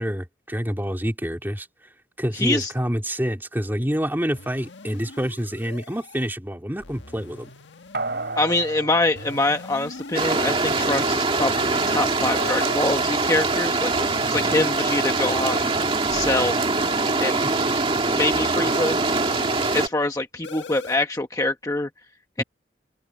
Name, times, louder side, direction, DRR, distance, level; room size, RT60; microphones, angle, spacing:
voice 1, 0.0-1.7 2.2-7.5 14.4-14.5 17.4-17.5 22.4-22.5, equal, 10° right, 2.9 m, -27 dB
voice 2, 2.3-2.7 8.3-15.7 16.1-16.6 17.2-17.4 18.1-19.0 19.7-21.9 22.4-22.5, left 2 dB, 20° left, 1.0 m, -24 dB
sound 1, 4.3-6.3 6.8-8.7 9.1-11.1 11.6-13.1 13.9-15.5 16.1-17.7 18.3-19.9 20.4-21.0, left 2 dB, 80° left, 1.6 m, -40 dB
sound 2, 7.9-10.5 10.9-11.0, right 3 dB, 60° right, 3.5 m, -34 dB
sound 3, 10.1-19.9, right 3 dB, 30° right, 2.1 m, -23 dB
open air
head